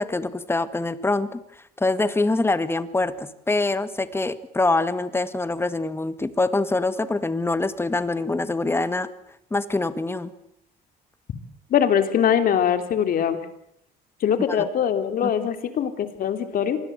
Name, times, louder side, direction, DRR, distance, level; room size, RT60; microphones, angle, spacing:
voice 1, 0.0-1.4 1.8-9.1 9.5-10.3 14.5-14.7 15.2-15.3, left 2 dB, 15° left, 13 dB, 1.8 m, -24 dB
voice 2, 11.7-13.4 14.2-16.8, left 8 dB, 60° left, 9 dB, 3.3 m, -22 dB
26.0 x 20.0 x 8.1 m, 0.74 s
cardioid pair, 110°, 17 cm